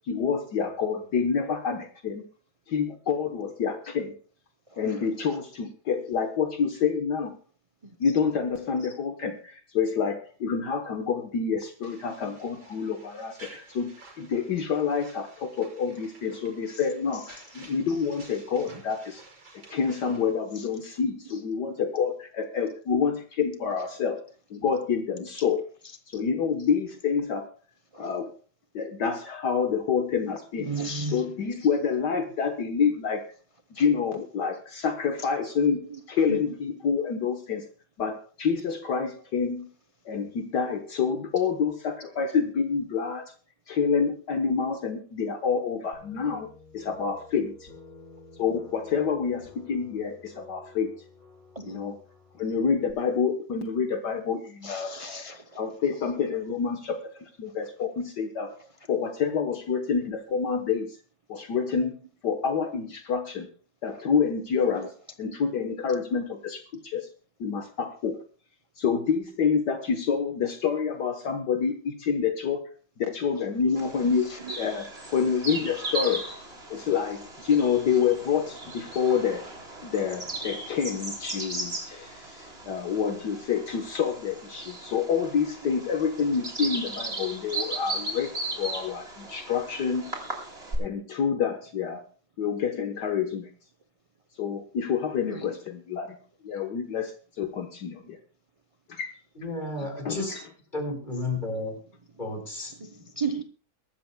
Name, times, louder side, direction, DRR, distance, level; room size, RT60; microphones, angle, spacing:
voice 1, 0.1-2.2 2.7-4.1 4.8-7.3 8.0-19.2 19.5-24.2 24.5-25.6 26.1-27.5 28.0-28.3 28.7-30.7 31.1-33.2 33.7-37.6 38.0-39.7 40.0-43.3 43.7-46.5 46.7-47.7 48.4-50.9 51.7-52.0 52.4-55.3 55.6-58.5 58.9-61.0 61.3-62.0 62.2-63.5 63.8-64.9 65.2-67.1 67.4-68.2 68.8-72.7 73.0-76.3 76.7-79.4 79.8-88.3 88.6-90.1 90.8-92.0 92.4-93.5 94.4-96.2 96.4-98.2 98.9-99.1 100.0-100.4, left 6 dB, 65° left, 1.7 m, -28 dB
voice 2, 4.7-5.4 7.8-8.0 17.1-17.2 18.7-18.8 20.5-21.0 27.9-28.1 30.6-31.2 33.8-33.9 35.2-35.3 35.9-36.5 51.5-51.8 54.6-55.7 57.5-57.6 63.9-64.0 64.8-64.9 73.4-73.9 74.2-74.6 85.6-85.7 95.2-95.5 99.8-99.9 100.2-100.3 102.6-103.4, right 3 dB, 65° right, 0.3 m, -37 dB
sound 1, 11.8-20.3, right 3 dB, 80° right, 6.7 m, -52 dB
sound 2, 45.9-52.9, left 4 dB, 40° left, 8.6 m, -51 dB
Bird vocalization bird call bird song, 73.8-90.8, right 2 dB, 30° right, 3.7 m, -37 dB
voice 3, 99.3-100.3 100.7-101.7 102.2-102.7, left 2 dB, 25° left, 4.8 m, -32 dB
22.5 x 13.0 x 2.2 m
omnidirectional pair, 2.0 m